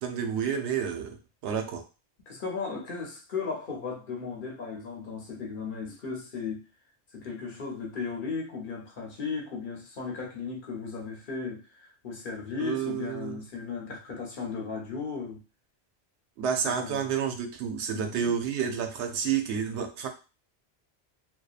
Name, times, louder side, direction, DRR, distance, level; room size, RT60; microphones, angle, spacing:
voice 1, 0.0-1.8 12.6-13.4 16.4-20.1, right 7 dB, 90° right, 5 dB, 0.9 m, -30 dB
voice 2, 2.3-6.7 7.1-15.4 16.6-17.1 17.9-18.3, left 5 dB, 55° left, 0 dB, 0.8 m, -36 dB
2.7 x 2.2 x 2.3 m, 0.32 s
omnidirectional pair, 1.1 m